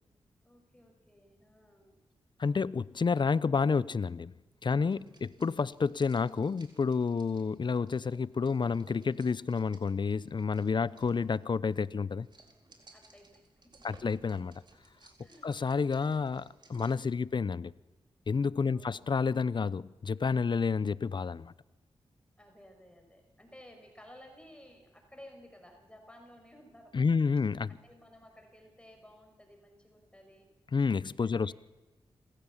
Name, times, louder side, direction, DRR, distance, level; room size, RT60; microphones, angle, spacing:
voice 1, 0.4-2.0 10.8-11.1 12.9-14.0 15.2-15.6 18.6-19.1 22.4-27.1 27.7-30.5 31.2-31.5, left 1 dB, 10° left, 5.7 m, -56 dB
voice 2, 2.4-4.3 4.6-12.3 13.8-14.5 15.4-17.7 18.3-21.5 26.9-27.7 30.7-31.5, left 5 dB, 50° left, 0.7 m, -30 dB
sound 1, 4.8-17.1, right 2 dB, 50° right, 4.2 m, -61 dB
26.5 x 15.5 x 7.4 m
cardioid pair, 55°, 10 cm